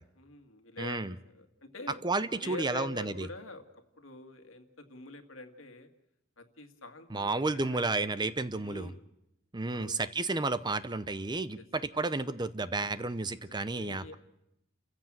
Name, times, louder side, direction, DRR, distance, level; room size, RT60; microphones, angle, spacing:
voice 1, 0.2-2.0 2.4-3.6 4.0-5.9 6.4-8.0 8.6-9.0 9.7-10.0 13.5-14.1, left 2 dB, 80° left, 6 dB, 2.2 m, -45 dB
voice 2, 0.8-1.1 2.0-3.3 7.1-8.9 9.5-14.1, right 3 dB, 20° right, 14 dB, 0.7 m, -32 dB
30.0 x 15.5 x 7.5 m, 0.86 s
head